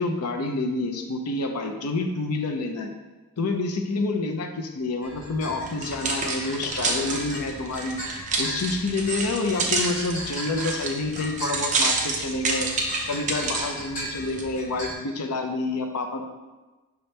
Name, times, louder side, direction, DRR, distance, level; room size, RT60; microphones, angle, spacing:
voice 1, 0.0-2.9 3.4-8.0 8.4-12.7 13.1-16.3, left 3 dB, 80° left, 4 dB, 0.5 m, -28 dB
sound 1, 5.0-15.0, right 1 dB, 35° left, 1.4 m, -37 dB
sound 2, 5.7-13.7 14.3-14.4, right 3 dB, 35° right, 0.6 m, -28 dB
5.5 x 2.9 x 3.2 m, 1.2 s
head